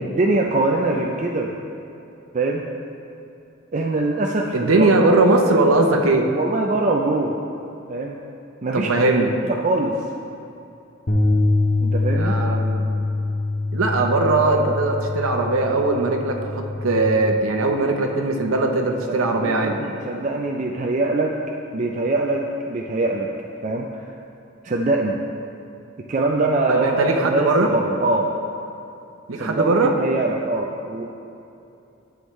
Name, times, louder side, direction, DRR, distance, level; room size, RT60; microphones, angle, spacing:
voice 1, 0.0-1.5 2.3-2.6 3.7-4.9 6.3-7.3 7.9-8.2 8.6-8.9 9.4-9.9 11.8-12.3 19.1-21.3 21.7-23.3 23.6-24.1 24.6-25.1 26.1-27.0 27.2-28.3 29.4-31.0, right 2 dB, 35° right, 0 dB, 0.4 m, -23 dB
voice 2, 4.5-6.3 8.7-9.3 12.1-12.9 13.7-19.8 26.7-27.7 29.3-29.9, right 2 dB, 90° right, 2 dB, 0.8 m, -20 dB
sound 1, 11.1-17.3, left 2 dB, 40° left, 0.8 m, -24 dB
11.0 x 7.2 x 3.2 m, 2.7 s
head